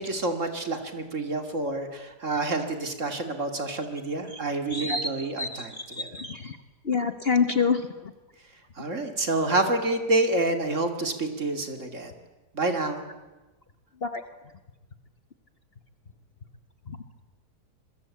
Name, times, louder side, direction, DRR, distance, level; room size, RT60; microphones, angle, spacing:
voice 1, 0.0-6.1 8.8-12.1 12.5-13.0, right 2 dB, 45° right, 6 dB, 2.7 m, -28 dB
voice 2, 4.7-6.6 6.8-7.8 14.0-14.2 16.9-17.0, left 5 dB, 40° left, 9 dB, 1.2 m, -27 dB
26.0 x 22.0 x 8.5 m, 1.1 s
omnidirectional pair, 1.8 m